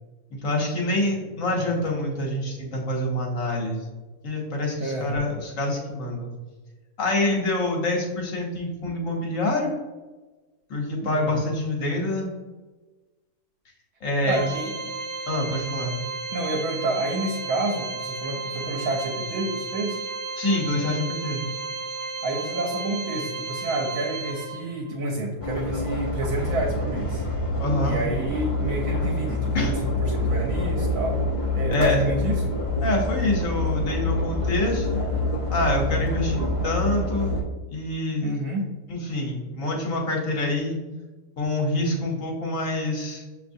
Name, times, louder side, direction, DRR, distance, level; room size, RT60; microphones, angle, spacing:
voice 1, 0.3-3.9 4.2-6.3 7.0-9.7 10.7-12.3 14.0-14.4 15.3-15.9 20.4-21.4 27.6-28.0 29.5-29.7 31.7-32.0 32.8-35.0 35.5-37.4 37.7-38.4 38.9-40.8 41.4-43.2, left 1 dB, 60° left, -1 dB, 1.2 m, -26 dB
voice 2, 4.8-5.2 11.0-11.5 14.2-14.7 16.3-20.0 22.2-27.2 27.8-31.2 31.5-32.5 38.2-38.7, right 1 dB, 70° right, 0 dB, 1.1 m, -29 dB
Organ, 14.3-24.9, right 4 dB, 40° right, 0.7 m, -33 dB
sound 1, 25.4-37.4, left 1 dB, 40° left, 0.5 m, -26 dB
6.3 x 2.8 x 2.6 m, 1.2 s
omnidirectional pair, 1.6 m